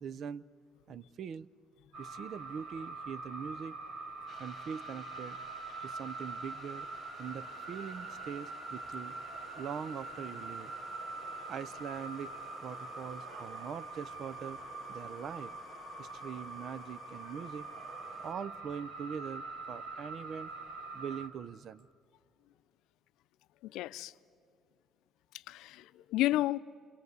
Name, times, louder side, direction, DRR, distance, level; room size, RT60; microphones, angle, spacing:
voice 1, 0.0-0.4 0.9-1.5 2.0-3.8 4.4-5.4 5.8-6.9 7.2-10.7 11.5-12.3 12.6-14.6 14.9-15.5 16.0-20.5 20.9-21.9, right 7 dB, 55° right, 0.6 m, -42 dB
sound 1, 1.9-21.3, right 3 dB, 80° right, 3.9 m, -44 dB
sound 2, 4.3-18.3, left 6 dB, 40° left, 1.5 m, -55 dB
voice 2, 23.6-24.1 25.5-26.6, left 16 dB, 85° left, 0.5 m, -31 dB
27.0 x 25.5 x 8.1 m
cardioid pair, 110°, 0 cm